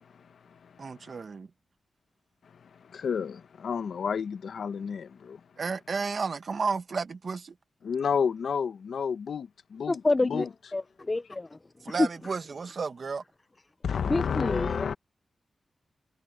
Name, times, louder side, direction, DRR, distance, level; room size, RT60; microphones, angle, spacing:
voice 1, 0.8-1.5 5.6-7.5 11.8-13.2, right 5 dB, 60° right, 1.4 m, -32 dB
voice 2, 2.6-5.4 7.8-10.5 13.8-14.9, left 6 dB, 85° left, 1.0 m, -31 dB
voice 3, 9.9-11.6 12.0-12.1 14.0-14.9, left 2 dB, 30° left, 0.4 m, -28 dB
wide cardioid pair, 85°, 0 cm